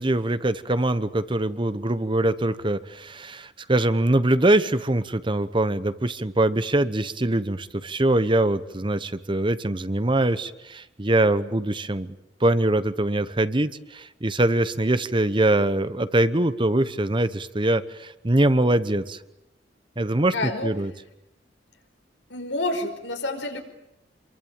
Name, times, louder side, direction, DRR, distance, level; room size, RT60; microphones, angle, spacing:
voice 1, 0.0-12.1 12.4-19.2 20.0-20.9, right 1 dB, 25° right, 13 dB, 1.0 m, -23 dB
voice 2, 20.3-20.7 22.3-23.6, left 2 dB, 85° left, 5 dB, 5.1 m, -28 dB
27.5 x 23.5 x 9.0 m, 0.87 s
head